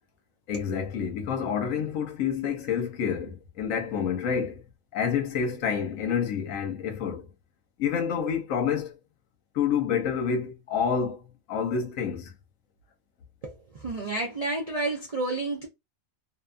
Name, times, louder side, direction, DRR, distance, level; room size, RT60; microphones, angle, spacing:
voice 1, 0.5-4.6 4.9-7.3 7.8-8.9 9.5-12.3, left 7 dB, 75° left, 1.1 m, -28 dB
voice 2, 13.4-15.7, right 2 dB, 50° right, 0.4 m, -30 dB
2.6 x 2.3 x 2.4 m
omnidirectional pair, 1.4 m